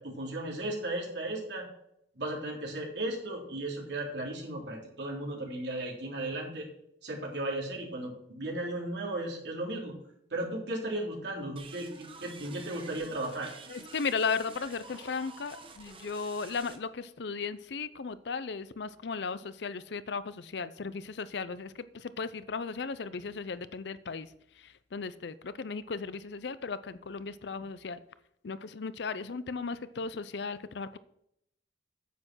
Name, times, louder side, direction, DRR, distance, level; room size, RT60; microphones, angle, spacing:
voice 1, 0.0-1.6 2.2-6.7 7.0-9.9 10.3-13.5, right 1 dB, 65° right, -1 dB, 3.5 m, -35 dB
sound 1, 11.6-16.8, right 4 dB, 30° right, 1.2 m, -49 dB
voice 2, 13.7-24.3 24.9-28.0 28.4-31.0, left 5 dB, 65° left, 15 dB, 0.5 m, -36 dB
9.3 x 7.7 x 6.0 m, 0.77 s
head